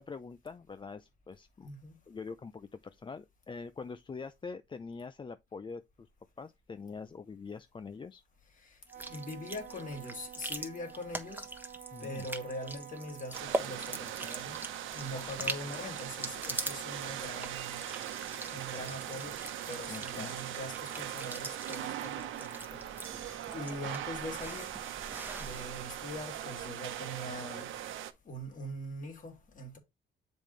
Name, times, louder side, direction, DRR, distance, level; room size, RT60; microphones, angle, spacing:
voice 1, 0.0-1.7 2.1-6.1 6.4-8.2 11.9-12.2 15.1-15.3 18.5-18.6 19.9-20.3, left 4 dB, 25° left, 0.5 m, -44 dB
sound 1, 8.9-26.8, right 1 dB, 10° right, 1.2 m, -43 dB
Wind instrument woodwind instrument, 8.9-13.4, right 11 dB, 55° right, 0.7 m, -50 dB
voice 2, 9.1-11.5 12.0-14.6 14.9-17.8 18.5-19.4 19.7-24.7 25.4-27.7 28.3-29.8, left 1 dB, 40° left, 2.3 m, -42 dB
sound 2, 13.3-28.1, right 11 dB, 80° right, 0.9 m, -40 dB
7.3 x 5.2 x 3.2 m
cardioid pair, 90°, 20 cm